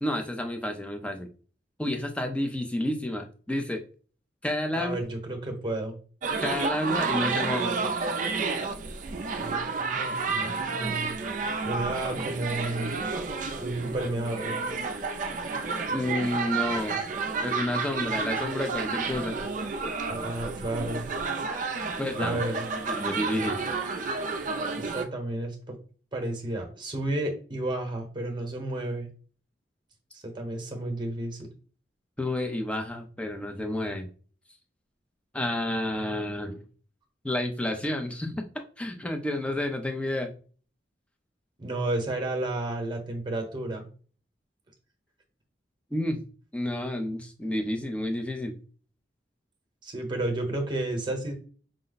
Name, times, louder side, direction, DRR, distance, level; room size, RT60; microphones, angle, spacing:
voice 1, 0.0-1.3 1.8-3.8 4.4-5.0 6.4-7.8 15.9-17.0 17.4-19.4 22.0-22.4 22.8-23.6 32.2-34.1 35.3-36.6 37.2-40.3 45.9-46.2 46.5-48.6, left 1 dB, 5° left, 4 dB, 0.5 m, -30 dB
voice 2, 4.7-6.0 9.4-11.1 11.6-12.9 13.6-14.6 20.1-21.1 22.2-22.7 24.8-25.8 26.1-29.1 30.1-31.5 41.6-43.9 49.8-51.3, right 2 dB, 25° right, 4 dB, 1.0 m, -32 dB
sound 1, 6.2-25.1, right 4 dB, 45° right, 0.5 m, -31 dB
5.0 x 2.1 x 3.9 m, 0.40 s
head